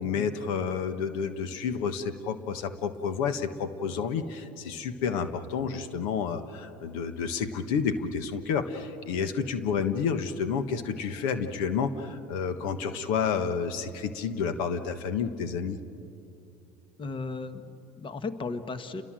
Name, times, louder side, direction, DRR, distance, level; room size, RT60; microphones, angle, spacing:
voice 1, 0.0-15.8, left 6 dB, 80° left, 10 dB, 1.5 m, -30 dB
voice 2, 17.0-19.0, left 3 dB, 30° left, 10 dB, 1.4 m, -35 dB
29.5 x 22.0 x 7.6 m, 2.7 s
supercardioid pair, 100°, 17 cm